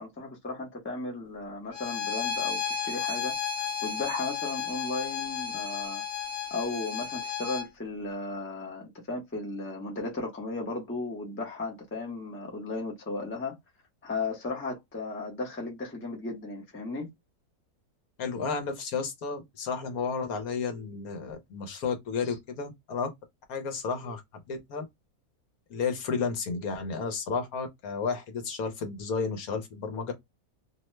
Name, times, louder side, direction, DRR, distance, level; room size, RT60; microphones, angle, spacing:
voice 1, 0.0-3.4 3.8-6.0 6.5-13.6 14.0-17.1, left 3 dB, 10° left, 0.6 m, -35 dB
Bowed string instrument, 1.7-7.7, left 7 dB, 55° left, 1.1 m, -33 dB
voice 2, 18.2-23.1 23.5-24.2 24.5-24.8 25.7-30.1, left 5 dB, 75° left, 1.3 m, -32 dB
2.9 x 2.1 x 3.1 m
omnidirectional pair, 1.6 m